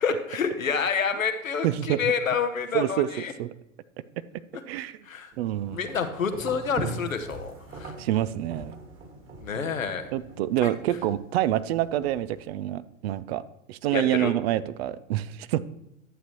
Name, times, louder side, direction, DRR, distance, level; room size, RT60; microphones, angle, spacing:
voice 1, 0.0-3.3 5.1-5.3 5.7-7.9 9.4-10.1 10.6-10.7 13.9-14.3, left 6 dB, 85° left, 7 dB, 1.0 m, -28 dB
voice 2, 1.6-2.0 2.7-3.5 4.7-5.0 5.4-5.8 8.0-8.7 10.1-13.4 13.7-15.6, right 13 dB, 50° right, 16 dB, 0.5 m, -27 dB
sound 1, 5.3-12.5, right 3 dB, 30° right, 2.0 m, -41 dB
11.0 x 8.1 x 3.0 m, 0.83 s
figure-of-eight pair, 90°, 39 cm